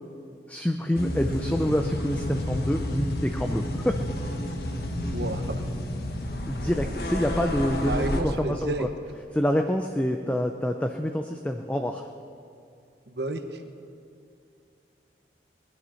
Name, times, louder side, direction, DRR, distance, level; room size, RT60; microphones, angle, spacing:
voice 1, 0.5-4.0 6.5-8.9 9.3-12.1, equal, 10° left, 4 dB, 0.5 m, -27 dB
sound 1, 1.0-8.2, left 1 dB, 60° left, 1.4 m, -30 dB
voice 2, 5.1-5.6 7.8-8.9 13.1-13.6, right 2 dB, 70° right, 6 dB, 1.1 m, -31 dB
19.5 x 11.0 x 5.8 m, 2.5 s
head